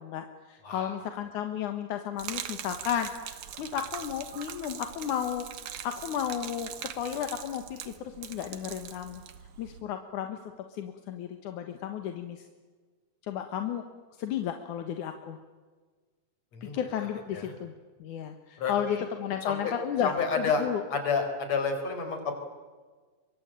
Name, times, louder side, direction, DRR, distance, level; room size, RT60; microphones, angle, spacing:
voice 1, 0.0-3.1 3.6-5.5 5.8-6.7 7.0-9.2 9.6-10.4 10.8-12.4 13.3-13.8 14.2-15.4 16.7-17.7 18.0-20.8, left 9 dB, 85° left, 7 dB, 2.9 m, -33 dB
Gurgling / Liquid, 2.2-9.8, right 10 dB, 85° right, 3.0 m, -42 dB
voice 2, 18.6-19.0 19.4-19.7 20.0-22.3, left 5 dB, 60° left, 6 dB, 5.5 m, -30 dB
25.5 x 23.5 x 9.0 m, 1.4 s
omnidirectional pair, 3.4 m